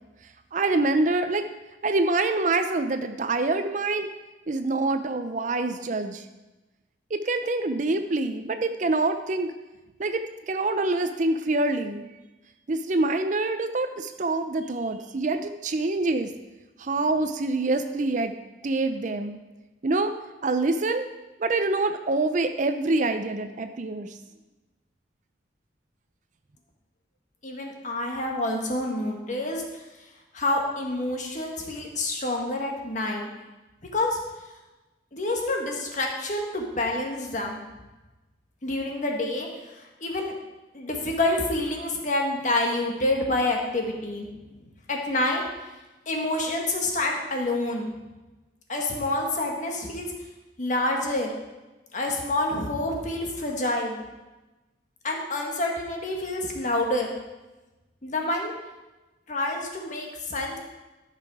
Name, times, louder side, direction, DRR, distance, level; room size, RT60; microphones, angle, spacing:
voice 1, 0.5-1.4 1.8-4.1 4.5-6.2 7.1-9.5 10.0-12.1 12.7-16.3 16.8-18.3 18.6-19.4 19.8-20.1 20.4-21.1 21.4-24.1, right 2 dB, 40° right, 9 dB, 0.5 m, -26 dB
voice 2, 27.4-29.6 30.3-33.3 33.9-34.2 35.1-37.6 38.6-39.5 39.8-40.3 40.7-44.3 44.9-45.4 46.1-47.9 48.7-50.1 50.6-51.3 51.9-54.0 55.0-57.1 58.0-58.5 59.3-60.6, left 2 dB, 40° left, 1 dB, 1.6 m, -27 dB
13.5 x 5.8 x 4.8 m, 1.1 s
head